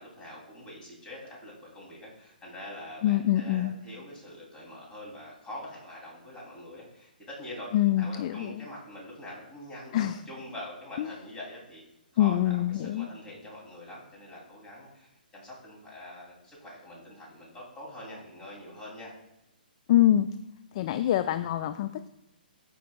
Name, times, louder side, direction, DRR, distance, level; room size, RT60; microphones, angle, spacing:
voice 1, 0.0-11.8 12.1-19.1, left 1 dB, 15° left, -4 dB, 2.9 m, -44 dB
voice 2, 3.0-3.8 7.7-8.6 9.9-10.2 11.0-11.1 12.2-13.1 19.9-20.3 20.7-22.1, left 12 dB, 35° left, 11 dB, 0.3 m, -25 dB
13.0 x 5.2 x 2.3 m, 0.90 s
figure-of-eight pair, 125°, 5 cm